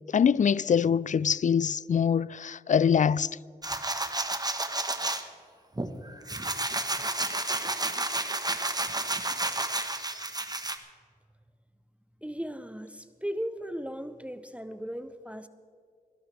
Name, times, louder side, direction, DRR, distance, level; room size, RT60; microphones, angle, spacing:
voice 1, 0.1-3.3, left 7 dB, 50° left, 0.4 m, -24 dB
sound 1, 3.6-5.2 5.8-10.8, right 2 dB, 25° right, 1.3 m, -31 dB
voice 2, 12.2-15.5, equal, 10° right, 0.8 m, -37 dB
22.0 x 12.0 x 3.4 m
cardioid pair, 50°, 16 cm